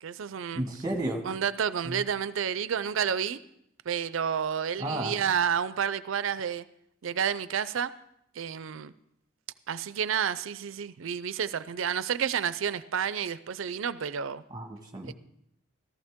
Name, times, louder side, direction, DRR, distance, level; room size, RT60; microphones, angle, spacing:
voice 1, 0.0-0.6 1.2-3.4 3.9-6.6 7.0-7.9 8.4-8.9 9.7-14.4 15.0-15.1, right 7 dB, 75° right, 15 dB, 0.5 m, -30 dB
voice 2, 0.5-1.2 1.8-2.0 4.8-5.1 14.5-15.1, right 1 dB, 20° right, 4 dB, 1.5 m, -32 dB
14.5 x 14.5 x 3.6 m, 0.74 s
head